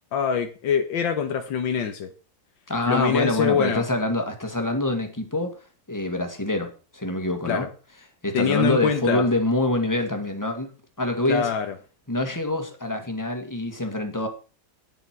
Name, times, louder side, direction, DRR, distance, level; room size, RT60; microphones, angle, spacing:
voice 1, 0.1-2.1 2.9-3.9 7.5-7.7 8.3-9.3 11.3-11.7, left 7 dB, 85° left, 6 dB, 1.8 m, -24 dB
voice 2, 2.7-5.6 5.9-7.7 8.2-10.7 11.0-11.5 12.1-14.3, left 1 dB, 10° left, 5 dB, 1.8 m, -25 dB
11.0 x 9.3 x 4.6 m, 0.35 s
omnidirectional pair, 2.0 m